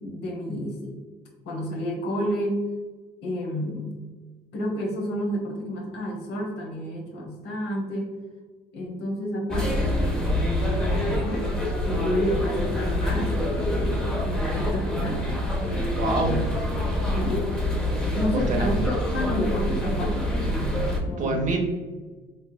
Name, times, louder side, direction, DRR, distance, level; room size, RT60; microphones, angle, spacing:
voice 1, 0.0-0.9 1.4-2.6 3.2-3.9 4.5-8.1 8.7-11.5 11.8-16.5 17.1-17.4 18.1-21.5, equal, 80° left, 0 dB, 1.0 m, -30 dB
sound 1, 9.5-21.0, left 1 dB, 5° left, 0.6 m, -26 dB
voice 2, 15.9-16.4 18.3-18.7 21.2-21.6, right 2 dB, 45° right, 2 dB, 0.7 m, -26 dB
3.5 x 2.9 x 2.2 m, 1.3 s
cardioid pair, 110°, 17 cm